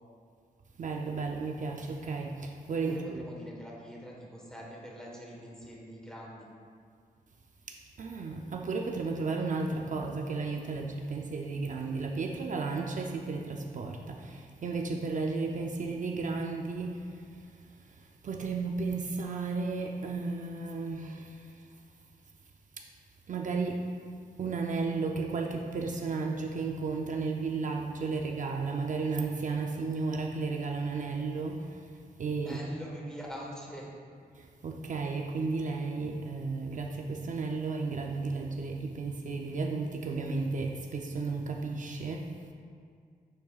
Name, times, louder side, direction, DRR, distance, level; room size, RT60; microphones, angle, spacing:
voice 1, 0.8-3.2 7.7-17.5 17.8-21.7 22.8-22.9 23.3-23.8 24.4-31.9 32.2-32.6 34.3-42.3, right 4 dB, 55° right, 2 dB, 0.5 m, -34 dB
voice 2, 2.8-6.5 32.4-33.9, equal, 5° left, -3 dB, 1.3 m, -44 dB
10.5 x 7.5 x 2.4 m, 2.2 s
wide cardioid pair, 155°, 16 cm